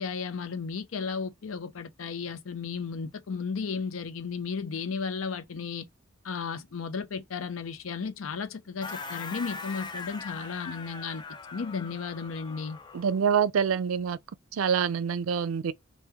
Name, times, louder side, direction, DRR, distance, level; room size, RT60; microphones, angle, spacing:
voice 1, 0.0-5.9 6.2-11.2 11.5-12.8, left 5 dB, 80° left, 0.5 m, -34 dB
sound 1, 8.8-13.2, left 4 dB, 20° left, 0.4 m, -41 dB
voice 2, 12.9-14.2 14.5-15.7, right 7 dB, 85° right, 0.4 m, -26 dB
3.4 x 2.1 x 2.8 m
head